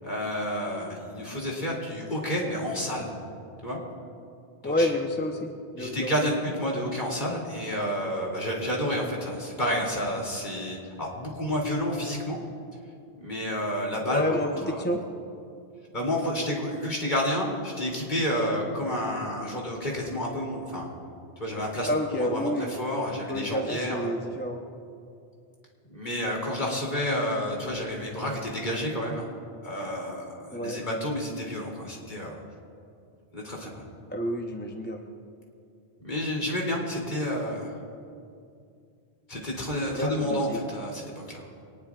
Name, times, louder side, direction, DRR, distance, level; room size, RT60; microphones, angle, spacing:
voice 1, 0.0-3.1 3.6-3.8 4.6-4.9 5.8-12.4 13.2-14.2 14.6-14.8 15.9-20.9 21.4-24.1 25.9-29.3 29.6-32.4 33.3-33.8 36.0-37.7 39.3-41.5, equal, 45° left, -2 dB, 3.2 m, -30 dB
voice 2, 4.6-5.5 5.7-6.1 14.1-15.0 21.9-22.7 23.3-24.6 30.5-30.8 34.1-35.0 39.9-40.6, left 1 dB, 10° left, 2 dB, 0.8 m, -29 dB
24.0 x 19.0 x 2.5 m, 2.4 s
omnidirectional pair, 1.1 m